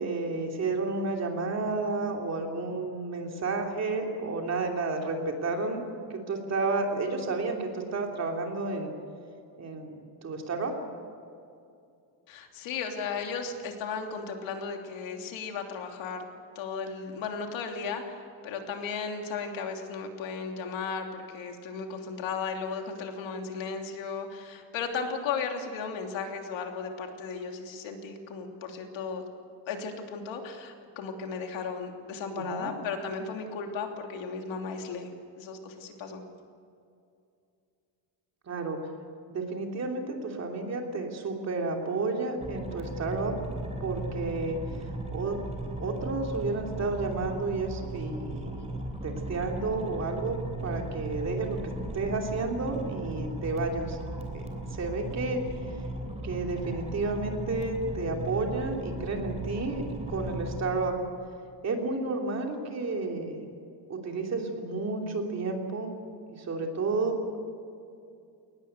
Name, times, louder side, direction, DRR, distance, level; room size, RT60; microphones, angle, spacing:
voice 1, 0.0-5.8 6.1-8.9 9.6-10.7 32.3-32.7 38.5-38.8 39.3-43.3 43.8-44.6 45.1-45.4 45.8-51.6 51.9-54.0 54.3-54.4 54.7-55.4 56.2-59.8 60.1-61.0 61.6-63.4 63.9-65.9 66.3-67.4, right 3 dB, 35° right, 2 dB, 3.0 m, -31 dB
voice 2, 12.3-16.2 16.5-29.2 29.6-35.1 35.4-36.2, left 5 dB, 80° left, 3 dB, 3.1 m, -35 dB
sound 1, 42.4-60.6, right 1 dB, 15° right, 3.3 m, -37 dB
22.0 x 19.5 x 8.2 m, 2.5 s
cardioid pair, 175°, 45 cm